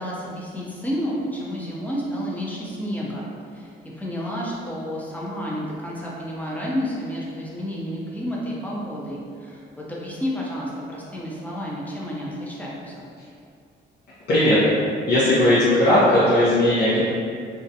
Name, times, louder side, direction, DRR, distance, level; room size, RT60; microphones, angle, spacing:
voice 1, 0.0-13.1, equal, 10° left, -5 dB, 0.6 m, -30 dB
voice 2, 14.3-14.6 15.1-17.0, left 1 dB, 55° left, -10 dB, 0.6 m, -17 dB
2.4 x 2.1 x 2.7 m, 2.4 s
cardioid pair, 90°, 20 cm